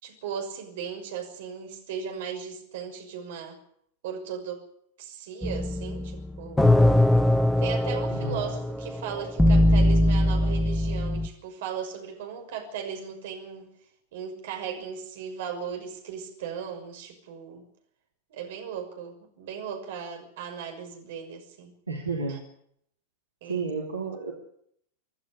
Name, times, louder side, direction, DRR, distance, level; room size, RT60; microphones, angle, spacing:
voice 1, 0.0-3.6 4.0-4.6 5.0-6.7 7.6-13.7 14.1-17.6 18.3-21.7 22.3-22.4 23.4-23.7, right 7 dB, 55° right, 4 dB, 6.2 m, -37 dB
sound 1, 5.4-11.3, left 1 dB, 5° left, 1.2 m, -22 dB
voice 2, 8.1-8.5 21.9-22.4 23.5-24.3, right 4 dB, 80° right, 0 dB, 3.4 m, -31 dB
27.0 x 11.5 x 9.9 m, 0.70 s
figure-of-eight pair, 90°, 0 cm